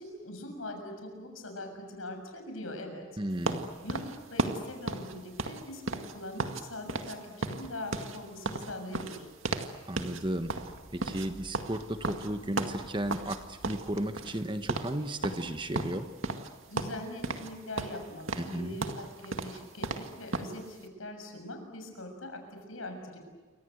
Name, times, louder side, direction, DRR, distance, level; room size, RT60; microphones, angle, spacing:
voice 1, 0.0-3.0 3.8-9.3 16.7-23.2, left 1 dB, 80° left, 5 dB, 6.8 m, -42 dB
voice 2, 3.2-3.7 9.9-10.5 10.9-16.1 18.4-18.8, right 1 dB, 25° right, 9 dB, 1.2 m, -34 dB
sound 1, 3.5-6.6 6.9-7.2 7.4-9.7 10.0-10.2 10.5-13.4 13.6-14.4 14.7-14.9 15.2-16.5 16.8-17.5 17.8-20.6, right 3 dB, 75° right, 2.0 m, -34 dB
sound 2, 10.2-15.9, equal, 60° left, 5.7 m, -54 dB
29.0 x 24.5 x 8.0 m, 1.3 s
head